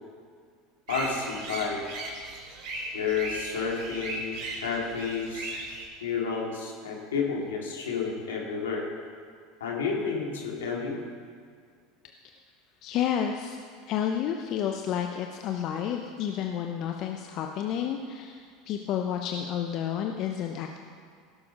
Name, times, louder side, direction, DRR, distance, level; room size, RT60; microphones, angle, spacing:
voice 1, 0.9-1.8 2.9-5.5 6.0-8.9 9.6-11.0, left 5 dB, 85° left, -1 dB, 2.4 m, -31 dB
sound 1, 0.9-5.8, right 2 dB, 55° right, 3.5 m, -37 dB
voice 2, 12.8-13.6 13.9-20.8, left 9 dB, 55° left, 3 dB, 0.8 m, -30 dB
17.0 x 6.9 x 5.4 m, 2.1 s
hypercardioid pair, 85°, 0 cm